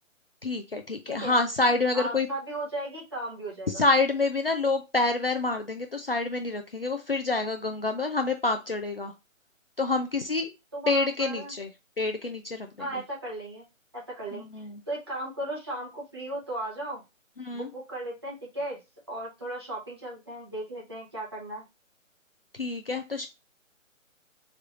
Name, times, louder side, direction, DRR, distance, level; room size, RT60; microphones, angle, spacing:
voice 1, 0.4-2.3 3.7-9.1 9.8-10.5 10.9-11.7 12.0-13.0 14.3-14.8 17.4-17.7 22.5-23.3, left 3 dB, 45° left, 5 dB, 0.5 m, -27 dB
voice 2, 1.9-3.8 10.7-11.5 12.8-13.6 13.9-17.0 17.5-18.8 19.1-21.6, right 1 dB, 20° right, -4 dB, 1.0 m, -36 dB
4.5 x 3.3 x 2.4 m, 0.25 s
hypercardioid pair, 180°, 40 cm